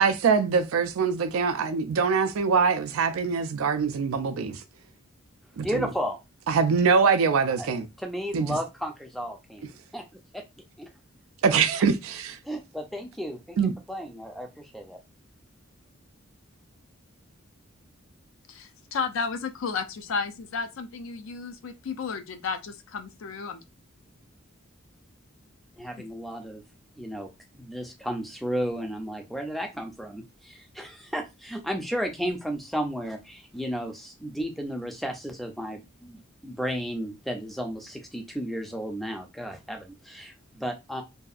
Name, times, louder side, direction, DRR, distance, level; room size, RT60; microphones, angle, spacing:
voice 1, 0.0-4.6 5.6-5.9 6.5-7.9 8.3-8.6 11.4-12.4 13.6-13.7, right 5 dB, 80° right, 0.4 m, -23 dB
voice 2, 5.6-6.2 7.6-7.7 8.0-10.0 10.3-10.4 10.8-10.9 12.4-13.6 13.9-15.0 25.8-26.6 27.0-27.3 27.5-41.0, equal, ahead, 0.3 m, -33 dB
voice 3, 18.5-23.6, left 5 dB, 70° left, 0.4 m, -33 dB
2.6 x 2.3 x 2.4 m
head